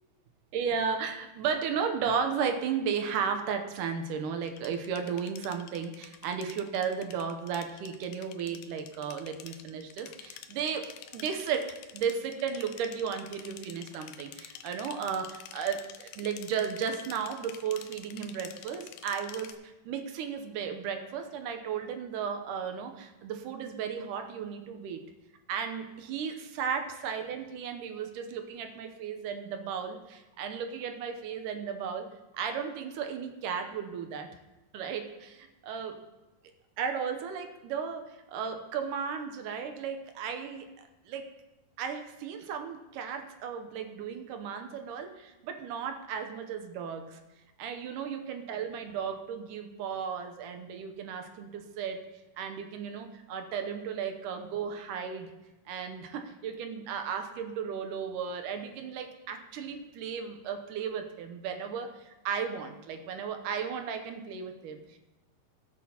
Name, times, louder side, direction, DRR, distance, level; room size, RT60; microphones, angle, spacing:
voice 1, 0.5-25.0 25.5-32.1 32.3-34.3 34.7-36.0 36.8-41.3 41.8-47.2 47.6-52.0 52.4-55.3 55.7-65.0, right 7 dB, 75° right, 5 dB, 2.1 m, -35 dB
sound 1, 4.4-19.5, left 11 dB, 80° left, 2.4 m, -49 dB
17.0 x 8.4 x 2.9 m, 1.0 s
omnidirectional pair, 4.3 m